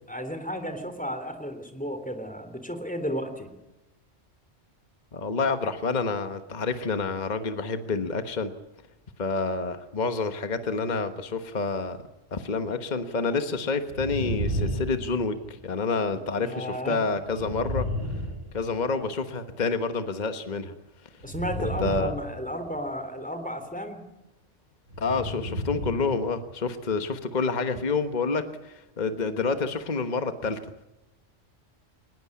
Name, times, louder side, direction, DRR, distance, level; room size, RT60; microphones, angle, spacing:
voice 1, 0.1-3.5 16.4-17.0 21.2-24.0, equal, 5° left, 7 dB, 3.3 m, -33 dB
voice 2, 5.1-8.5 9.2-12.0 12.3-17.9 18.5-20.7 21.6-22.1 25.0-30.6, left 4 dB, 40° left, 8 dB, 1.4 m, -28 dB
sound 1, 13.9-15.7 17.2-19.1 21.2-22.9 24.9-26.2 26.5-26.6, equal, 85° right, 4.2 m, -32 dB
22.0 x 20.5 x 8.5 m, 0.94 s
omnidirectional pair, 1.2 m